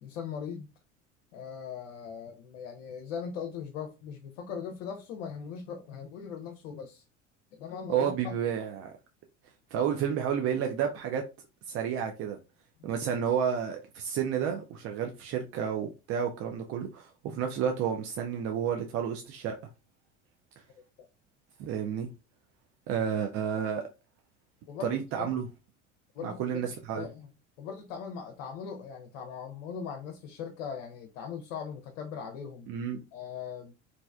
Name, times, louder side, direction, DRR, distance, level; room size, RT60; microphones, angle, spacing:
voice 1, 0.0-0.7 1.3-7.0 7.6-8.4 12.8-12.9 22.9-23.0 24.7-25.3 26.1-27.3 27.6-32.7 33.1-33.7, left 7 dB, 65° left, 0.6 m, -40 dB
voice 2, 7.9-8.9 9.7-11.2 11.7-12.4 12.8-19.6 21.6-22.1 22.9-23.9 24.8-25.5 26.2-27.1 32.7-33.0, right 8 dB, 40° right, 0.4 m, -31 dB
3.1 x 2.6 x 2.3 m
figure-of-eight pair, 65°, 36 cm